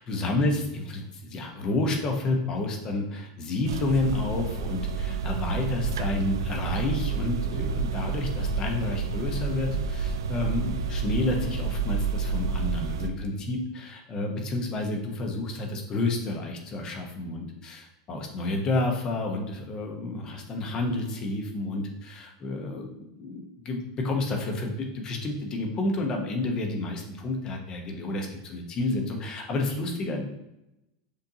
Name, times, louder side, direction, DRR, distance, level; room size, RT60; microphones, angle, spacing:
voice 1, 0.0-30.2, left 2 dB, 35° left, 2 dB, 1.0 m, -30 dB
sound 1, 3.7-13.1, right 5 dB, 85° right, 0.3 m, -29 dB
6.6 x 2.6 x 2.8 m, 0.89 s
hypercardioid pair, 110°, 2 cm